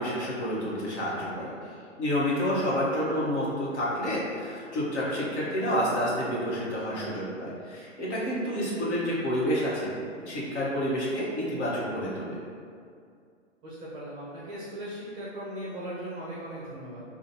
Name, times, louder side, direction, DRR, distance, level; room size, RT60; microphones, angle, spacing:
voice 1, 0.0-1.5 2.0-12.4, equal, 60° left, -6 dB, 1.3 m, -29 dB
voice 2, 13.6-17.0, right 1 dB, 15° right, -8 dB, 0.5 m, -38 dB
5.0 x 2.4 x 2.8 m, 2.3 s
figure-of-eight pair, 120°, 37 cm